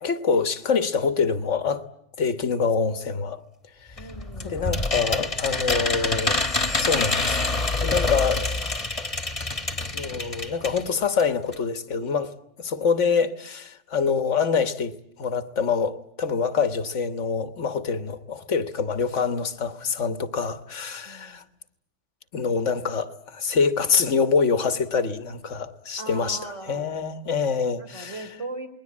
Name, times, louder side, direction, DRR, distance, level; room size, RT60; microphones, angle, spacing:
voice 1, 0.0-1.8 2.2-3.4 4.4-6.4 6.7-7.4 7.8-8.8 9.9-12.3 12.6-21.4 22.3-28.2, left 5 dB, 80° left, 1.6 m, -25 dB
sound 1, 4.0-10.9 11.2-11.3 11.5-11.6, left 2 dB, 30° left, 1.5 m, -26 dB
voice 2, 4.0-4.6 21.0-21.4 26.0-27.0 27.8-28.7, right 2 dB, 80° right, 4.4 m, -38 dB
28.5 x 21.5 x 8.5 m
omnidirectional pair, 1.2 m